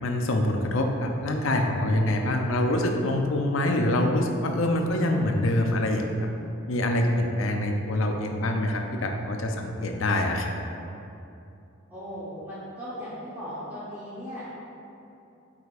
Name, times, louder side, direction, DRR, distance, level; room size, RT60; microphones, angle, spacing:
voice 1, 0.0-6.1 6.7-10.5, left 1 dB, 70° left, 3 dB, 0.6 m, -25 dB
voice 2, 11.9-14.4, equal, 10° right, -12 dB, 1.0 m, -37 dB
7.9 x 5.0 x 2.5 m, 2.7 s
head